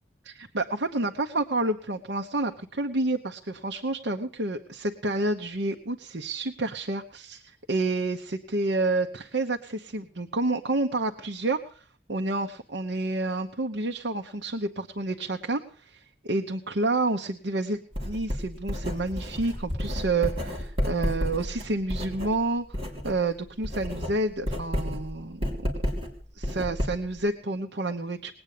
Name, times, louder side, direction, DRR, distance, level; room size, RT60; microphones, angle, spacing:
voice 1, 0.2-22.6 23.0-25.5 26.3-28.3, right 2 dB, 70° right, 4 dB, 1.0 m, -29 dB
Writing, 17.9-23.2 23.5-27.2, equal, 30° right, 3.6 m, -31 dB
20.0 x 8.9 x 6.7 m, 0.43 s
head